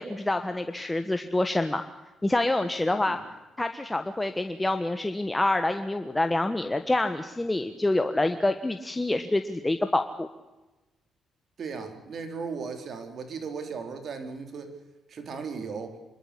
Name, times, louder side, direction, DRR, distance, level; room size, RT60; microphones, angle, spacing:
voice 1, 0.0-1.8 2.2-3.2 3.6-10.3, left 2 dB, 15° left, 7 dB, 1.4 m, -27 dB
voice 2, 2.8-3.2 11.6-14.8 15.1-16.0, right 5 dB, 55° right, 6 dB, 4.3 m, -37 dB
26.0 x 13.0 x 9.9 m, 1.1 s
cardioid pair, 90°, 0 cm